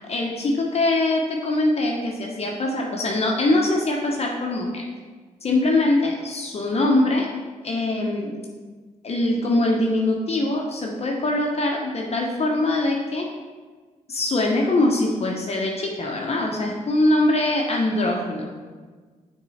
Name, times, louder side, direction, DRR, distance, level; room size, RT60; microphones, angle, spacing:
voice 1, 0.1-4.8 5.4-7.3 7.6-8.4 9.0-13.3 14.1-18.6, left 2 dB, 50° left, -1 dB, 0.9 m, -22 dB
6.3 x 3.7 x 4.2 m, 1.4 s
cardioid pair, 60°, 14 cm